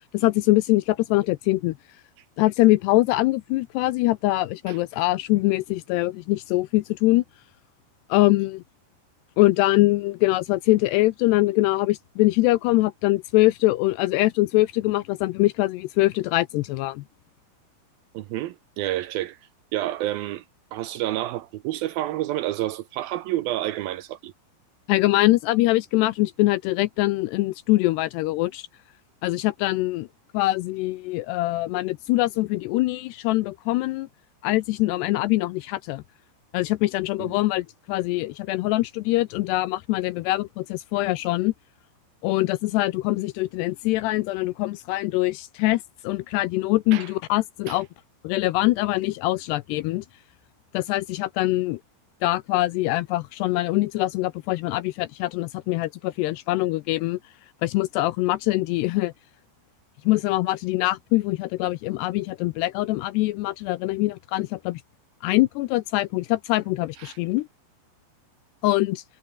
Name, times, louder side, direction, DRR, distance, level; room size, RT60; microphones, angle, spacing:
voice 1, 0.1-1.7 2.4-7.2 8.1-8.6 9.4-17.0 24.9-28.7 29.2-30.1 30.3-34.1 34.4-36.0 36.5-41.5 42.2-47.9 48.2-50.0 50.7-51.8 52.2-57.2 57.6-59.1 60.1-64.8 65.2-67.5 68.6-69.0, left 18 dB, 80° left, 2.6 m, -23 dB
voice 2, 18.1-19.4 19.7-20.4 20.7-24.3 37.2-37.3 46.9-47.1 47.7-47.8 67.0-67.2, right 14 dB, 75° right, 2.2 m, -29 dB
omnidirectional pair, 5.1 m